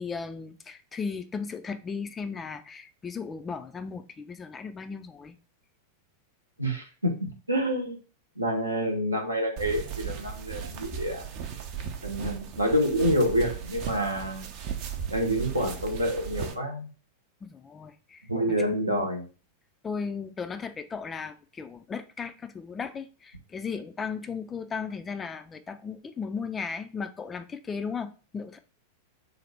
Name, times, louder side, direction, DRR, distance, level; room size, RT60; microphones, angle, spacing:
voice 1, 0.0-5.4 17.4-18.3 18.7-19.1 19.8-28.6, left 5 dB, 20° left, 0.3 m, -36 dB
voice 2, 6.6-8.0 8.4-11.3 11.8-14.5 15.1-16.9 18.3-19.2, equal, 85° right, 0.7 m, -28 dB
sound 1, 9.6-16.5, right 8 dB, 45° right, 0.5 m, -36 dB
3.3 x 2.0 x 4.1 m
figure-of-eight pair, 90°, 0 cm